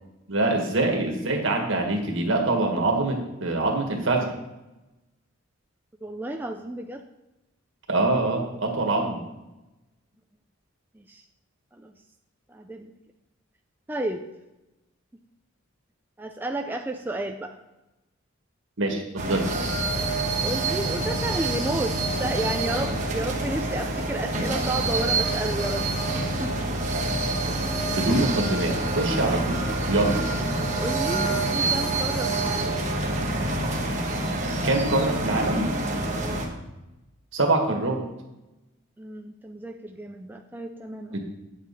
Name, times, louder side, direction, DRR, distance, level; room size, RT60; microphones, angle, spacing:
voice 1, 0.3-4.3 7.9-9.2 18.8-19.5 27.9-30.2 34.6-35.7 37.3-38.0 41.1-41.2, right 2 dB, 65° right, 2 dB, 1.8 m, -24 dB
voice 2, 6.0-7.0 10.9-11.2 11.7-11.9 12.5-12.9 13.9-14.3 15.1-15.2 16.2-17.6 20.4-25.9 26.4-26.7 30.8-32.9 36.1-36.4 39.0-41.2, right 1 dB, 10° right, 4 dB, 0.4 m, -32 dB
sound 1, 19.2-36.5, right 2 dB, 35° right, 1.4 m, -27 dB
9.7 x 7.2 x 4.1 m, 1.0 s
head